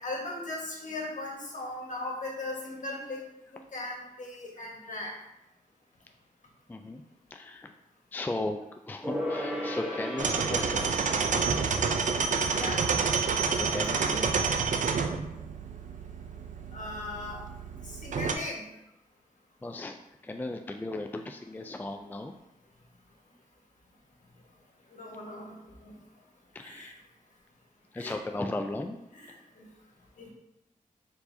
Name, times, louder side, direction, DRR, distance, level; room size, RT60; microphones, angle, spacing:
voice 1, 0.0-3.2 3.7-5.1 12.5-12.8 16.7-17.4 17.8-18.6 24.9-25.6 25.8-25.9 26.6-26.9 28.0-28.1 29.1-29.7 30.2-30.3, left 2 dB, 60° left, -2 dB, 1.4 m, -38 dB
voice 2, 6.7-7.0 7.3-7.7 8.1-11.3 13.5-14.9 19.6-19.9 20.2-22.3 26.5-26.9 27.9-29.0, left 2 dB, 15° left, 5 dB, 0.3 m, -37 dB
Gong, 9.0-14.9 15.2-15.3, equal, 10° right, 1.3 m, -37 dB
sound 1, 10.2-18.3, right 5 dB, 60° right, 0.5 m, -29 dB
4.6 x 4.1 x 2.7 m, 0.85 s
cardioid pair, 60°, 14 cm